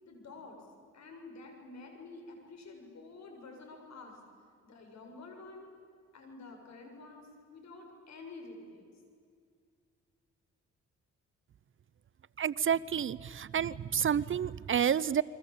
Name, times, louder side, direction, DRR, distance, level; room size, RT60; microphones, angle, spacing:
voice 1, 0.0-0.6 0.9-4.2 4.6-5.7 6.1-8.9, left 3 dB, 60° left, 4 dB, 7.1 m, -49 dB
voice 2, 12.4-15.2, right 8 dB, 45° right, 19 dB, 0.7 m, -29 dB
29.5 x 23.0 x 8.6 m, 2.3 s
cardioid pair, 90°, 30 cm